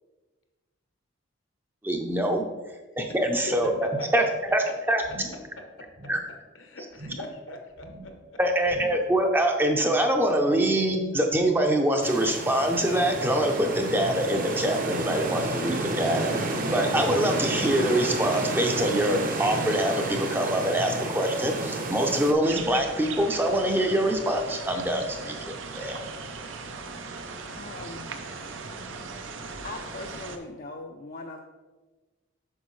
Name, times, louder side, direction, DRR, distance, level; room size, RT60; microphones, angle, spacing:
voice 1, 1.8-2.4 3.0-4.2 4.5-5.0 6.1-6.2 8.4-16.3 16.7-26.0, right 1 dB, 10° right, 3 dB, 0.5 m, -24 dB
voice 2, 3.2-4.1 6.5-8.4, left 1 dB, 75° left, 4 dB, 1.1 m, -38 dB
sound 1, 3.5-4.0 4.3-4.6 5.0-5.5 5.9-6.3 6.9-7.5 7.7-8.2 8.6-9.2 9.5-9.6, right 1 dB, 60° right, 1.7 m, -45 dB
sound 2, 12.0-22.3, right 2 dB, 45° right, 0.8 m, -30 dB
sound 3, 22.4-30.4, right 4 dB, 80° right, 0.7 m, -38 dB
voice 3, 27.5-28.1 29.6-31.4, left 3 dB, 40° left, 2 dB, 0.4 m, -40 dB
8.1 x 5.9 x 3.2 m, 1.3 s
head